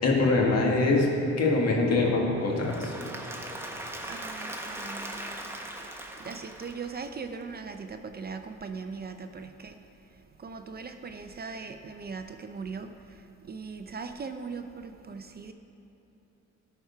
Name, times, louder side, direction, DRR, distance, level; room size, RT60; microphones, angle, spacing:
voice 1, 0.0-1.1 1.4-2.9, left 3 dB, 55° left, -1 dB, 1.9 m, -23 dB
Applause / Crowd, 2.4-7.3, right 1 dB, 10° right, 1.1 m, -40 dB
voice 2, 4.0-5.5 6.2-9.7 10.4-12.9 13.5-15.5, right 5 dB, 30° right, 7 dB, 0.5 m, -39 dB
12.5 x 4.8 x 5.7 m, 3.0 s
cardioid pair, 90°, 30 cm